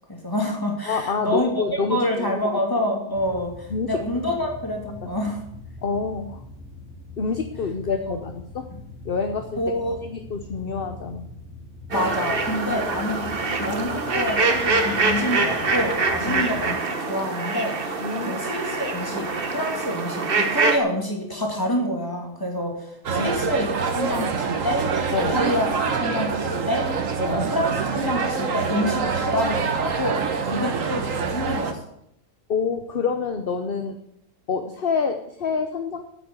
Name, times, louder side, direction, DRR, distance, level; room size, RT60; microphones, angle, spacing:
voice 1, 0.1-1.6 1.9-5.4 8.1-8.2 9.6-10.0 11.9-13.3 13.6-16.8 17.1-24.9 25.3-25.7 26.0-31.8, left 1 dB, 15° left, 0 dB, 2.6 m, -27 dB
voice 2, 0.9-2.6 3.7-4.0 5.0-5.1 5.8-6.4 7.2-8.7 9.0-11.3 16.2-16.5 18.0-18.4 23.2-23.3 25.1-25.4 27.2-27.4 30.5-30.7 32.5-34.0 34.5-36.0, left 5 dB, 45° left, 6 dB, 0.9 m, -27 dB
sound 1, 3.1-16.8, left 2 dB, 65° left, 3.4 m, -42 dB
sound 2, 11.9-20.8, right 3 dB, 40° right, 1.3 m, -25 dB
sound 3, 23.0-31.7, right 5 dB, 60° right, 1.5 m, -25 dB
9.1 x 8.5 x 8.2 m, 0.75 s
omnidirectional pair, 1.6 m